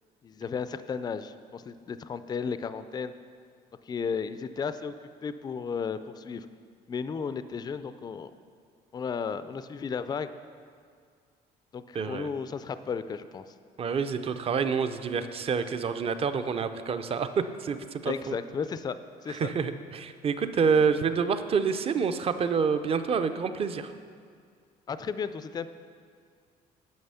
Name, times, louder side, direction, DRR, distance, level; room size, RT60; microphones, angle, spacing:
voice 1, 0.2-3.1 3.9-4.9 5.2-6.5 6.9-8.3 8.9-10.3 11.7-13.4 18.0-18.9 19.2-19.5 24.9-25.7, left 6 dB, 25° left, 12 dB, 0.3 m, -34 dB
voice 2, 11.9-12.3 13.8-17.3 17.6-18.4 19.3-23.9, right 6 dB, 35° right, 10 dB, 0.5 m, -27 dB
9.5 x 6.2 x 5.6 m, 2.1 s
cardioid pair, 110°, 17 cm